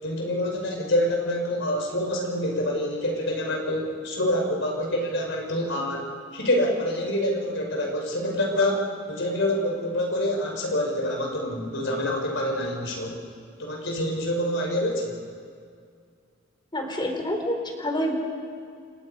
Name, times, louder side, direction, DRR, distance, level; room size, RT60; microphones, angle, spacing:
voice 1, 0.0-13.2 13.6-15.2, left 1 dB, 65° left, 1 dB, 5.3 m, -26 dB
voice 2, 16.7-18.1, equal, 25° left, 3 dB, 3.9 m, -27 dB
29.0 x 28.0 x 5.5 m, 2.2 s
head